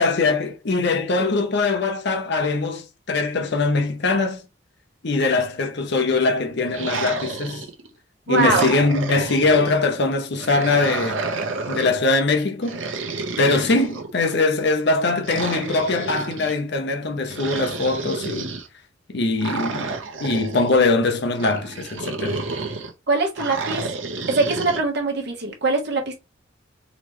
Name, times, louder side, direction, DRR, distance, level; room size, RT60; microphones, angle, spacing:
voice 1, 0.0-4.4 5.0-7.7 8.3-11.2 11.7-12.8 13.4-18.5 19.1-22.4, left 3 dB, 60° left, 0.8 m, -22 dB
sound 1, 6.7-7.9 8.3-9.8 10.4-12.0 12.6-14.3 15.2-16.6 17.3-18.7 19.4-20.7 21.4-22.9 23.4-24.8, right 3 dB, 80° right, 0.9 m, -30 dB
voice 2, 8.3-8.7 13.3-13.7 23.1-23.9 24.3-26.2, right 3 dB, 60° right, 1.2 m, -23 dB
4.1 x 3.2 x 3.1 m
head